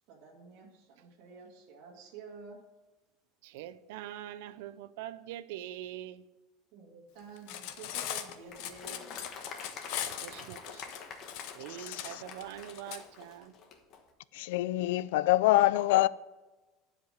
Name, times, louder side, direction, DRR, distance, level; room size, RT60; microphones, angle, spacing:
voice 1, 0.1-2.6 6.7-9.1, right 4 dB, 55° right, 2.0 m, -50 dB
voice 2, 3.4-6.3 10.2-10.8 11.5-13.6, right 12 dB, 80° right, 0.5 m, -43 dB
Cutlery silverware, 7.4-13.0, left 11 dB, 60° left, 0.8 m, -39 dB
Applause, 8.5-14.0, left 5 dB, 35° left, 1.1 m, -47 dB
voice 3, 14.3-16.1, left 16 dB, 85° left, 0.3 m, -25 dB
11.5 x 5.0 x 6.4 m
cardioid pair, 170°, 0 cm